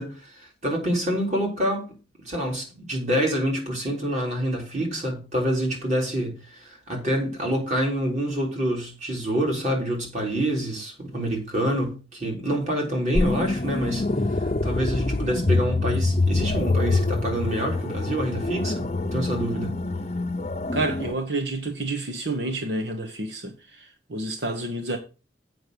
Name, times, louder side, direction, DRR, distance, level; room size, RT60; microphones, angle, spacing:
voice 1, 0.0-1.9 2.2-19.8, equal, 40° right, 4.1 m, -27 dB
sound 1, 13.1-21.1, left 2 dB, 35° left, 0.7 m, -25 dB
voice 2, 20.7-25.0, right 2 dB, 75° right, 1.2 m, -29 dB
7.9 x 6.3 x 6.9 m
head